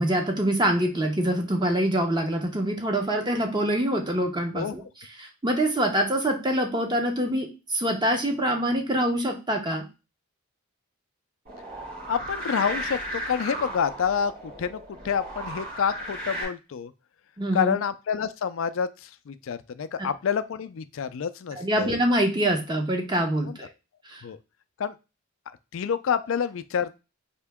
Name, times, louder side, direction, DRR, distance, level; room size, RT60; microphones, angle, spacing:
voice 1, 0.0-4.8 5.2-9.9 17.4-17.7 20.0-20.1 21.6-23.5 24.1-24.2, right 1 dB, 20° right, 3 dB, 0.7 m, -25 dB
sound 1, 11.4-16.4, right 1 dB, 40° right, 2.7 m, -35 dB
voice 2, 12.1-16.9 17.5-22.0 23.4-23.6 24.2-24.4 24.8-24.9 25.7-27.0, left 7 dB, 60° left, 12 dB, 0.4 m, -28 dB
4.4 x 2.9 x 3.5 m, 0.29 s
head